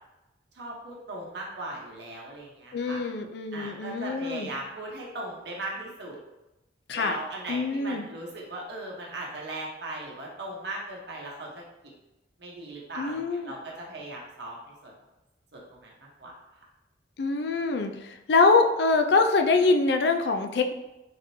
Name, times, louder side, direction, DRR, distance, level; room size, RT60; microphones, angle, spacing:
voice 1, 0.5-3.0 3.5-6.2 6.9-11.5 12.4-14.6 14.8-14.9 15.5-16.3, right 2 dB, 65° right, -3 dB, 1.0 m, -38 dB
voice 2, 2.7-4.5 6.9-7.2 7.5-8.1 13.0-13.5 17.2-20.7, left 3 dB, 65° left, 6 dB, 0.4 m, -24 dB
3.9 x 3.6 x 2.7 m, 0.98 s
head